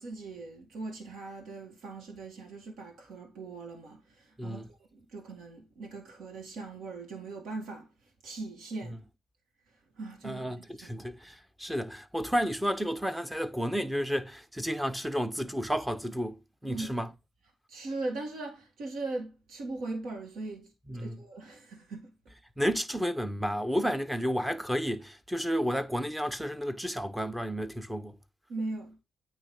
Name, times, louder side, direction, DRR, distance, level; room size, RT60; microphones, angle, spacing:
voice 1, 0.0-7.9 8.2-9.0 10.0-11.1 16.7-17.0 17.7-20.7 20.9-22.1 28.5-29.0, right 3 dB, 75° right, 2.0 m, -40 dB
voice 2, 4.4-4.7 8.8-9.0 10.2-17.1 20.9-21.2 22.6-28.2, equal, 5° right, 0.8 m, -32 dB
8.9 x 3.1 x 5.3 m
cardioid pair, 90°, 0 cm